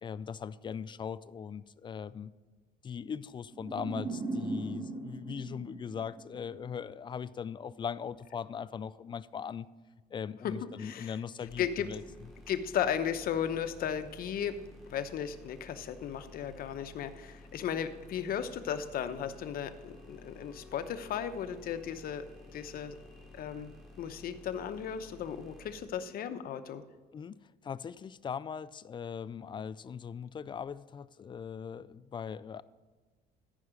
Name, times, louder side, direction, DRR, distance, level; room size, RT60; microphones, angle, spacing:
voice 1, 0.0-2.3 2.8-9.7 10.1-12.0 27.1-32.6, left 7 dB, 30° left, 17 dB, 0.3 m, -40 dB
sound 1, 3.5-6.7, right 2 dB, 25° right, 1.4 m, -39 dB
voice 2, 10.8-11.2 11.6-11.9 12.5-14.6 14.9-22.2 22.5-23.0 23.4-23.7 24.0-26.8, left 9 dB, 60° left, 9 dB, 0.9 m, -35 dB
sound 2, 11.4-25.8, left 1 dB, ahead, 3.2 m, -53 dB
sound 3, 19.9-23.8, left 6 dB, 85° left, 2.3 m, -59 dB
14.0 x 5.6 x 5.1 m, 1.4 s
cardioid pair, 110°, 17 cm